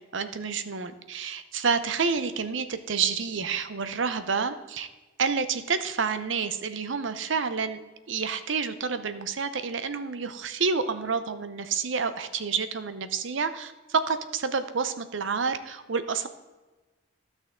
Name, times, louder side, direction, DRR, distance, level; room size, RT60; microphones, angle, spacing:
voice 1, 0.1-4.9 5.2-7.8 8.1-16.3, right 5 dB, 70° right, 11 dB, 0.7 m, -29 dB
13.0 x 6.3 x 3.7 m, 1.2 s
head